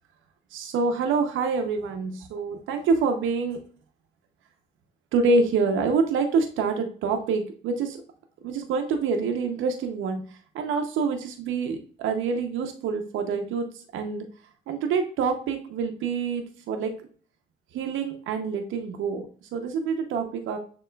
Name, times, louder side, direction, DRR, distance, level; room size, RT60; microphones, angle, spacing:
voice 1, 0.5-3.6 5.1-8.0 8.4-10.2 10.5-14.2 14.7-16.9 17.7-20.6, right 4 dB, 85° right, 5 dB, 0.7 m, -26 dB
6.7 x 2.9 x 2.2 m, 0.43 s
cardioid pair, 90°, 20 cm